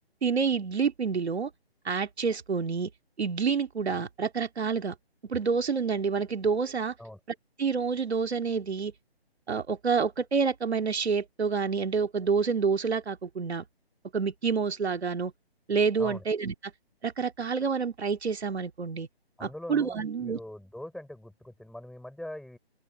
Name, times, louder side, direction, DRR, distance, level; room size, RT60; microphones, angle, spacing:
voice 1, 0.2-1.5 1.8-2.9 3.2-4.9 5.3-6.9 7.6-8.9 9.5-13.6 14.1-15.3 15.7-16.5 17.0-19.1 19.4-20.4, right 5 dB, 80° right, 2.2 m, -28 dB
voice 2, 19.4-22.6, left 1 dB, ahead, 5.4 m, -42 dB
open air
hypercardioid pair, 175°, 32 cm